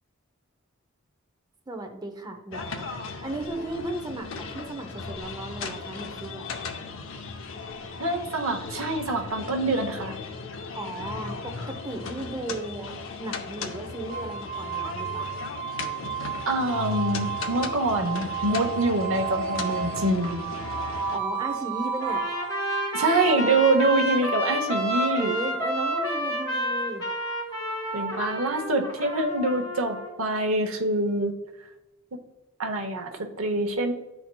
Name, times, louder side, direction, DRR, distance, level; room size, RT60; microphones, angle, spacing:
voice 1, 1.7-2.9 3.2-6.5 10.7-15.3 21.1-22.2 25.1-27.0, right 2 dB, 20° right, 5 dB, 0.6 m, -35 dB
sound 1, 2.5-21.2, left 4 dB, 70° left, 0.7 m, -37 dB
voice 2, 8.0-10.2 16.5-20.5 22.9-25.3 27.9-31.4 32.6-33.9, right 2 dB, 75° right, 4 dB, 0.8 m, -25 dB
sound 2, 14.1-29.0, right 6 dB, 45° right, 2.1 m, -34 dB
Trumpet, 22.0-30.1, equal, 20° left, 1.7 m, -30 dB
10.5 x 4.4 x 2.2 m, 0.99 s
head